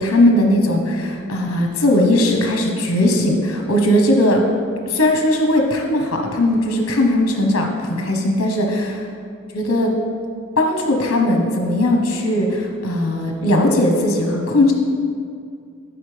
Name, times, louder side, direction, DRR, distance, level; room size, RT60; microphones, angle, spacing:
voice 1, 0.0-4.4 4.9-9.1 9.5-9.9 10.6-14.7, left 1 dB, 65° left, 1 dB, 0.9 m, -18 dB
12.0 x 4.8 x 3.3 m, 2.3 s
head